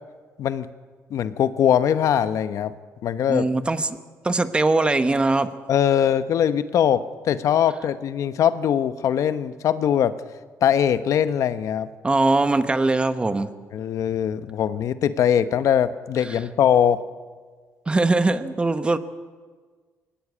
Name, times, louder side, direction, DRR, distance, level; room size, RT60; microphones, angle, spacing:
voice 1, 1.1-2.7 3.0-3.5 5.7-10.1 10.6-11.9 13.7-17.0, left 9 dB, 65° left, 12 dB, 0.9 m, -21 dB
voice 2, 3.3-3.9 4.2-5.5 12.0-13.5 16.2-16.4 17.9-19.0, right 2 dB, 15° right, 11 dB, 1.0 m, -21 dB
22.0 x 17.5 x 8.4 m, 1.5 s
cardioid pair, 125°, 6 cm